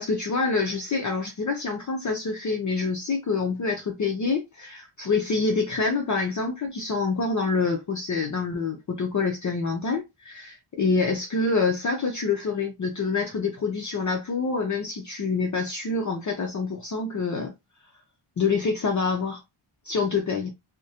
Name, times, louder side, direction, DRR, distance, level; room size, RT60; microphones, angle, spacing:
voice 1, 0.0-17.5 18.4-19.4 19.8-20.5, left 4 dB, 40° left, 0.5 m, -26 dB
2.4 x 2.1 x 2.7 m
wide cardioid pair, 135°, 50 cm